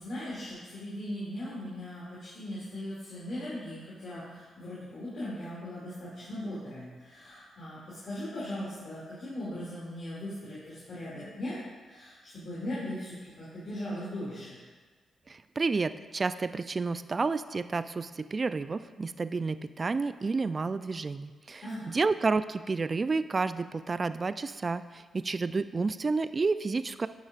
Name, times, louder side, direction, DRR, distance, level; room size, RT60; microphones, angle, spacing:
voice 1, 0.0-11.6 11.9-14.6 21.6-22.0, left 1 dB, 60° left, -9 dB, 2.4 m, -39 dB
voice 2, 15.6-24.8 25.1-27.1, right 4 dB, 40° right, 13 dB, 0.3 m, -30 dB
10.5 x 6.1 x 2.5 m, 1.4 s
supercardioid pair, 45°, 0 cm